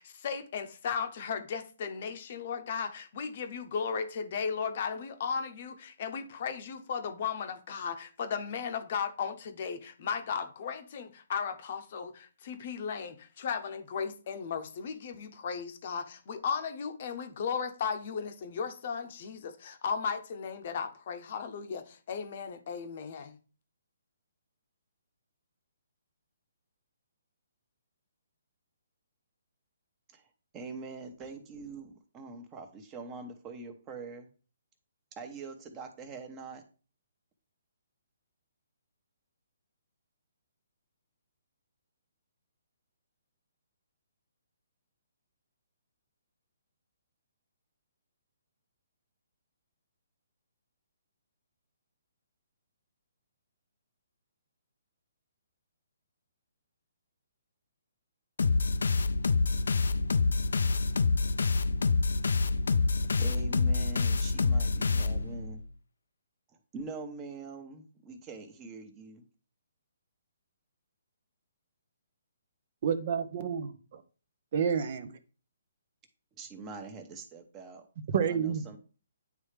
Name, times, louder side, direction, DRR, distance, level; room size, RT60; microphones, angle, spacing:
voice 1, 0.0-23.4, left 6 dB, 50° left, 0.8 m, -36 dB
voice 2, 30.5-34.3 35.2-36.6 63.2-65.6 66.7-69.2 76.4-77.9 78.1-78.8, right 3 dB, 20° right, 1.0 m, -44 dB
sound 1, 58.4-65.5, left 4 dB, 80° left, 0.4 m, -27 dB
voice 3, 72.8-74.0 74.5-75.1 78.1-78.8, right 7 dB, 50° right, 0.7 m, -30 dB
9.4 x 3.3 x 3.3 m
hypercardioid pair, 150°, 0 cm